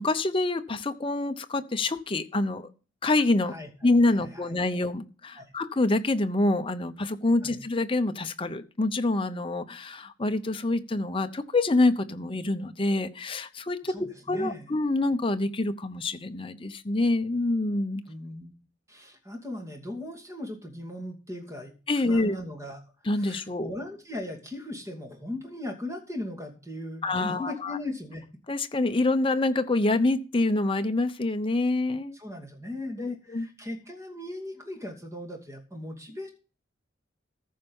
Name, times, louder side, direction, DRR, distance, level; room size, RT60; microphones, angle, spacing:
voice 1, 0.0-2.7 3.0-3.6 3.8-18.0 21.9-22.3 23.0-23.7 27.0-27.8 28.5-32.2 33.0-33.5, left 2 dB, 25° left, 0.7 m, -26 dB
voice 2, 4.2-4.5 5.4-5.5 7.4-7.6 13.9-14.7 18.1-18.5 18.9-22.8 23.1-28.3 32.2-36.3, left 1 dB, 15° right, 2.5 m, -38 dB
14.5 x 5.5 x 5.4 m
head